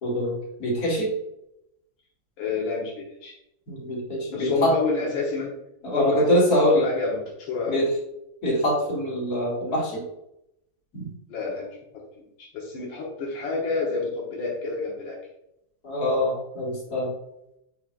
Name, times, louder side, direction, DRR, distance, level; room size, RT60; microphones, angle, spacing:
voice 1, 0.0-1.1 3.7-4.7 5.8-6.9 7.7-7.9 8.4-10.0 10.9-11.1 15.8-17.1, equal, 55° left, -5 dB, 2.7 m, -24 dB
voice 2, 2.4-3.3 4.3-5.5 5.8-6.3 6.8-7.8 11.3-15.2, left 4 dB, 90° left, -3 dB, 1.9 m, -29 dB
7.8 x 5.0 x 2.4 m, 0.82 s
omnidirectional pair, 2.0 m